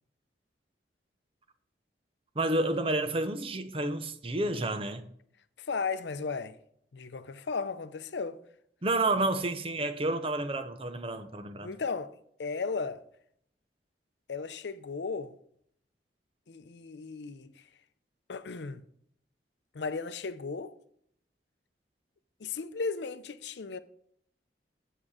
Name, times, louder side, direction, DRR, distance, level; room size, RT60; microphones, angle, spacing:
voice 1, 2.4-5.0 8.8-11.7, right 2 dB, 30° right, 0.7 m, -30 dB
voice 2, 5.6-6.6 6.9-8.4 11.6-12.1 12.4-13.0 14.3-15.3 16.5-17.6 18.3-18.8 19.7-20.7 22.4-23.8, left 4 dB, 70° left, 0.6 m, -35 dB
8.8 x 7.3 x 4.9 m
head